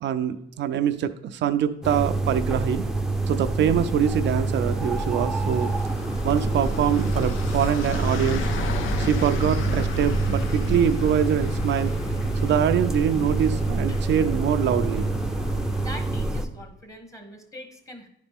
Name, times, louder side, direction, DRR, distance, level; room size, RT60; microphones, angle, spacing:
voice 1, 0.0-2.9 3.3-5.7 6.2-8.5 9.0-11.9 12.4-15.1, right 9 dB, 65° right, 9 dB, 0.4 m, -24 dB
sound 1, 1.8-16.5, right 2 dB, 5° right, 0.6 m, -26 dB
sound 2, 2.9-16.1, left 2 dB, 85° left, 0.7 m, -36 dB
voice 2, 15.8-18.1, equal, 15° left, 5 dB, 1.3 m, -42 dB
10.0 x 4.0 x 3.6 m, 0.81 s
cardioid pair, 90°, 20 cm